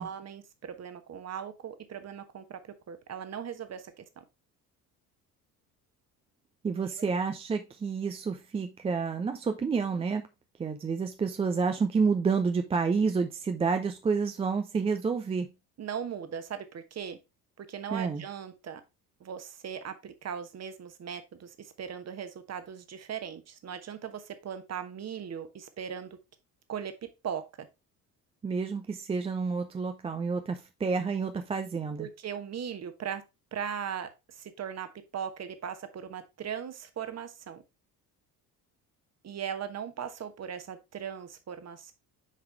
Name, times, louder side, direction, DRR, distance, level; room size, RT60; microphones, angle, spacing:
voice 1, 0.0-4.2 15.8-17.2 17.6-18.8 19.2-26.2 26.7-27.4 32.0-33.2 33.5-34.9 35.1-37.6 39.2-41.9, right 8 dB, 30° right, 1.1 m, -38 dB
voice 2, 6.6-10.3 10.6-15.5 17.9-18.2 28.4-32.1, right 5 dB, 15° right, 0.4 m, -29 dB
6.9 x 4.8 x 3.3 m
figure-of-eight pair, 55°, 49 cm